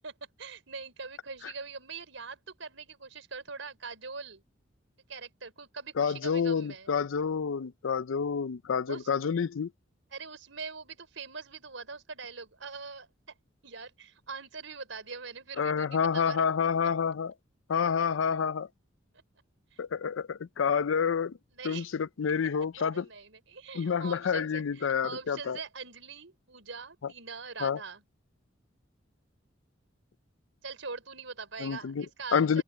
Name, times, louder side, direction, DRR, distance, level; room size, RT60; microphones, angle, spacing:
voice 1, 0.4-4.4 5.1-6.9 8.9-9.1 10.1-13.1 13.6-16.4 21.5-21.9 22.9-28.0 30.6-32.6, right 4 dB, 80° right, 4.5 m, -42 dB
voice 2, 6.0-9.7 15.6-17.3 17.7-18.7 19.8-21.3 21.6-23.1 23.7-25.6 27.6-27.8 31.6-32.1 32.3-32.6, left 6 dB, 85° left, 0.5 m, -28 dB
open air
head